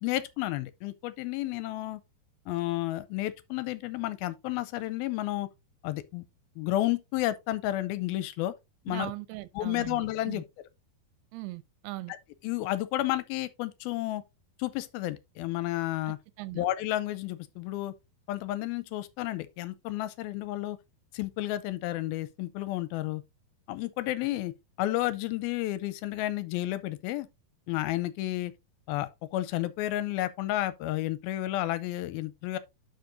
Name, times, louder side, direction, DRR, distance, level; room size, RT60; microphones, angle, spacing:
voice 1, 0.0-2.0 2.5-5.5 5.8-6.2 6.6-8.5 8.9-9.1 9.6-10.4 12.1-12.2 12.4-14.2 14.6-16.2 16.6-17.9 18.3-20.8 21.1-23.2 23.7-24.5 24.8-27.3 27.7-28.5 28.9-32.6, left 15 dB, 80° left, 2.3 m, -31 dB
voice 2, 8.9-10.4 11.3-12.1 16.1-16.6, right 18 dB, 85° right, 2.7 m, -40 dB
11.5 x 5.0 x 2.6 m
omnidirectional pair, 4.5 m